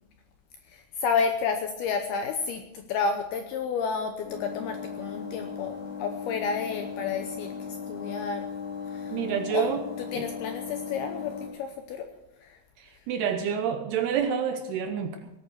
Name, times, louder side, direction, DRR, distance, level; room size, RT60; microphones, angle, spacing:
voice 1, 0.7-8.5 8.9-9.2 9.5-9.7 10.1-12.1 12.4-12.6, left 5 dB, 80° left, 6 dB, 2.3 m, -31 dB
sound 1, 4.2-11.5, left 6 dB, 45° left, 4.2 m, -37 dB
voice 2, 9.1-9.8 10.2-10.3 12.8-15.3, right 8 dB, 75° right, 7 dB, 2.5 m, -28 dB
19.0 x 8.6 x 6.3 m, 0.89 s
omnidirectional pair, 5.4 m